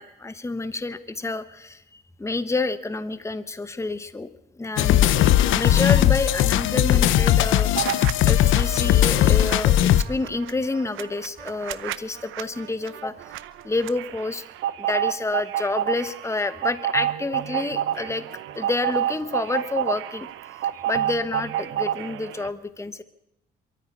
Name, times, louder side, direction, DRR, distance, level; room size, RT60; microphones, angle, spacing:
voice 1, 0.0-4.3 4.6-5.1 5.5-7.7 8.2-13.1 13.6-14.4 14.8-18.2 18.5-20.3 20.8-23.0, left 3 dB, 15° left, 12 dB, 1.1 m, -28 dB
sound 1, 4.8-10.0, left 12 dB, 85° left, 0.8 m, -18 dB
sound 2, 7.7-8.1 8.4-22.5, right 11 dB, 85° right, 0.8 m, -30 dB
23.0 x 13.5 x 8.4 m, 0.84 s
cardioid pair, 90°, 20 cm